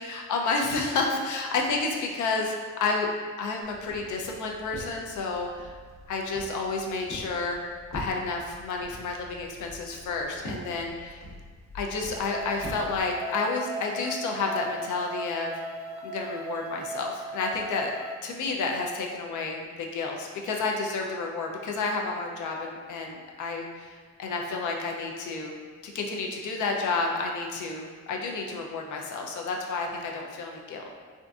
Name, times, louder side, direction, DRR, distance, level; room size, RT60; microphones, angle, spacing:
voice 1, 0.0-3.1 3.4-5.7 6.1-7.6 7.9-11.2 11.7-15.5 16.0-17.9 18.2-25.5 25.8-30.9, left 3 dB, 80° left, 1 dB, 0.5 m, -30 dB
Walk footsteps, 3.6-13.0, equal, 60° left, 1.0 m, -44 dB
sound 1, 12.1-18.1, right 1 dB, 20° right, 0.6 m, -38 dB
3.5 x 2.5 x 2.3 m, 1.5 s
cardioid pair, 120°, 30 cm